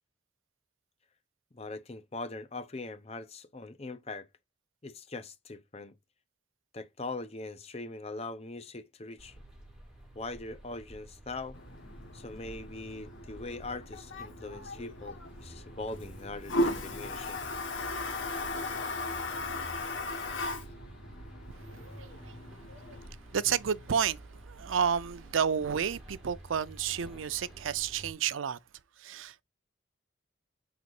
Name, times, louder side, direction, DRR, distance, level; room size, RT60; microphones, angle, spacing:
voice 1, 1.5-4.3 4.8-5.9 6.7-9.4 10.1-11.6 12.1-17.4, left 2 dB, 30° left, 0.7 m, -41 dB
sound 1, 9.2-28.1, right 1 dB, 5° right, 2.9 m, -50 dB
Toilet flush, 11.5-23.1, left 2 dB, 80° left, 1.3 m, -37 dB
voice 2, 21.6-22.6 22.9-23.0 23.3-28.6 29.0-29.4, right 7 dB, 85° right, 0.5 m, -31 dB
5.1 x 4.0 x 4.7 m
head